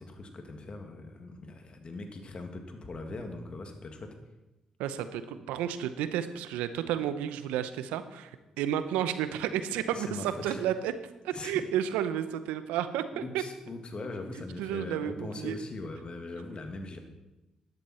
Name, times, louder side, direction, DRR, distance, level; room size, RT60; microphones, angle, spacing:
voice 1, 0.0-4.1 9.9-10.6 11.3-11.6 13.1-17.0, left 2 dB, 45° left, 5 dB, 2.2 m, -41 dB
voice 2, 4.8-10.9 11.2-13.4 14.6-15.6, right 10 dB, 85° right, 11 dB, 0.7 m, -32 dB
13.0 x 11.0 x 4.4 m, 1.0 s
supercardioid pair, 50°, 2 cm